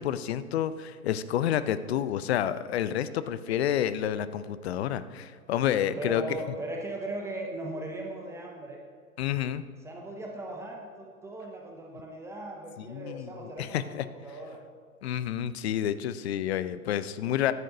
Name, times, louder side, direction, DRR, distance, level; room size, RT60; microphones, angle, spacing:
voice 1, 0.0-6.2 9.2-9.6 12.8-13.3 13.6-14.0 15.0-17.5, left 10 dB, 50° left, 14 dB, 0.6 m, -29 dB
voice 2, 6.0-8.8 9.8-14.6, right 2 dB, 5° right, 0 dB, 0.5 m, -38 dB
14.5 x 11.0 x 2.7 m, 2.1 s
hypercardioid pair, 120°, 43 cm